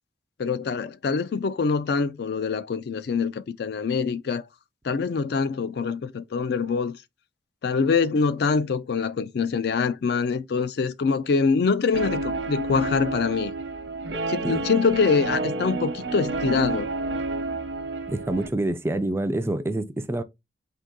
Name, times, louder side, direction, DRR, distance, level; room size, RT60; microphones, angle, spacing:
voice 1, 0.4-4.5 4.8-7.0 7.6-13.5 14.3-16.9, left 5 dB, 60° left, 0.4 m, -24 dB
Guitar, 11.9-18.5, right 2 dB, 85° right, 0.8 m, -30 dB
voice 2, 18.1-20.2, right 1 dB, 15° right, 0.3 m, -26 dB
3.9 x 2.8 x 3.6 m
head